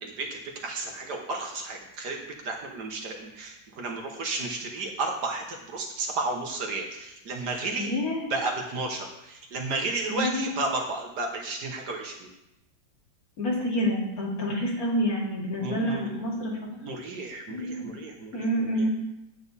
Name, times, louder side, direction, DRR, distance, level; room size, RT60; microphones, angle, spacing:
voice 1, 0.0-7.9 8.3-12.3 15.6-18.5 18.7-18.9, right 3 dB, 60° right, 2 dB, 1.6 m, -33 dB
voice 2, 7.8-8.3 10.1-10.5 13.4-16.7 17.5-17.9 18.3-18.9, equal, 50° left, -2 dB, 2.3 m, -28 dB
8.8 x 8.4 x 4.1 m, 0.86 s
omnidirectional pair, 2.1 m